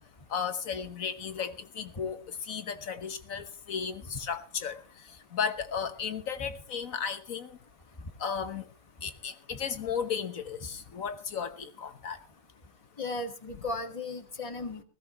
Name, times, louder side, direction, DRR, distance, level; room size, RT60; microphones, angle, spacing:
voice 1, 0.3-4.8 5.3-7.6 8.2-8.6 9.0-12.2, left 7 dB, 80° left, 10 dB, 1.5 m, -34 dB
voice 2, 13.0-14.8, left 2 dB, 25° left, 6 dB, 1.8 m, -35 dB
19.5 x 16.5 x 3.1 m, 0.36 s
omnidirectional pair, 1.4 m